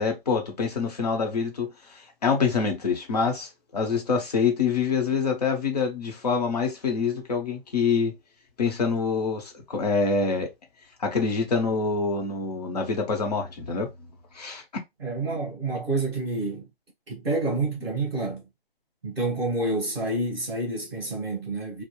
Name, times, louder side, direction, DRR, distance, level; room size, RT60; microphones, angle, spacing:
voice 1, 0.0-8.1 8.6-10.5 11.0-13.9 14.3-14.8, left 5 dB, 40° left, 0.9 m, -26 dB
voice 2, 15.0-16.7 17.1-18.4 19.0-21.8, right 2 dB, ahead, 0.6 m, -28 dB
2.5 x 2.1 x 3.0 m
hypercardioid pair, 170°, 30 cm